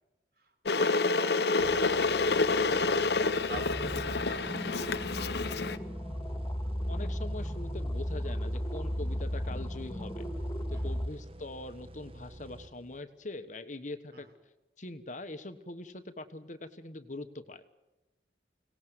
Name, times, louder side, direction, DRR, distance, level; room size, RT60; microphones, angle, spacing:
voice 1, 0.4-5.7 10.7-11.0 14.1-14.3, right 1 dB, 55° right, 6 dB, 3.9 m, -46 dB
Water / Boiling, 0.7-5.8, left 3 dB, 65° left, 0.9 m, -28 dB
sound 1, 1.6-13.3, right 1 dB, 30° right, 1.2 m, -49 dB
sound 2, 3.5-11.1, equal, 15° left, 2.0 m, -35 dB
voice 2, 6.9-10.3 10.7-14.3 14.8-17.6, left 2 dB, 45° left, 10 dB, 1.2 m, -43 dB
24.5 x 18.0 x 7.9 m, 1.0 s
head